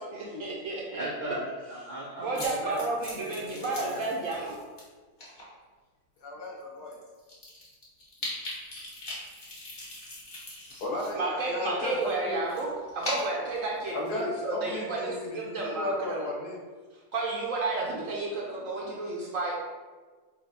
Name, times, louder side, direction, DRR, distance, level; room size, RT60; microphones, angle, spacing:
voice 1, 0.1-0.9 2.2-4.6 11.2-16.3 17.1-19.5, right 3 dB, 65° right, -3 dB, 0.9 m, -32 dB
voice 2, 0.9-4.1, right 1 dB, 85° right, -6 dB, 0.4 m, -38 dB
sound 1, 2.3-4.8 5.2-5.4 6.2-6.3 6.6-6.7 6.9-11.1 11.4-14.2, left 1 dB, 40° left, 1.1 m, -40 dB
voice 3, 6.2-7.0 10.8-12.4 13.9-16.6, left 2 dB, 75° left, -2 dB, 1.3 m, -34 dB
3.8 x 2.3 x 4.0 m, 1.4 s
omnidirectional pair, 1.7 m